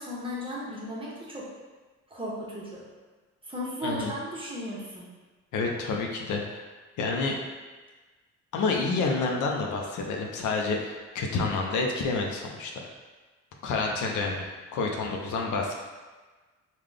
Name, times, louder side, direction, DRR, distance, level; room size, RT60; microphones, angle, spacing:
voice 1, 0.0-1.5 2.1-2.8 3.5-5.1, equal, 15° right, -6 dB, 1.0 m, -35 dB
voice 2, 3.8-4.1 5.5-6.6 7.0-7.4 8.5-12.9 13.6-15.7, left 3 dB, 75° left, 0 dB, 0.6 m, -29 dB
3.8 x 2.3 x 3.3 m, 1.3 s
cardioid pair, 90°, 30 cm